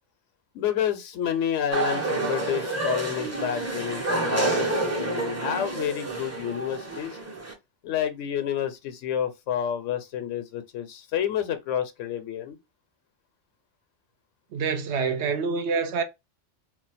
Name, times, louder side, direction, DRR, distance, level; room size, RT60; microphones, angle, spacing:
voice 1, 0.5-7.2 7.8-12.6, left 9 dB, 85° left, 0.9 m, -29 dB
sound 1, 1.7-7.5, right 2 dB, 20° right, 0.5 m, -28 dB
voice 2, 14.5-16.0, right 5 dB, 70° right, 0.8 m, -26 dB
2.4 x 2.2 x 4.0 m
omnidirectional pair, 1.2 m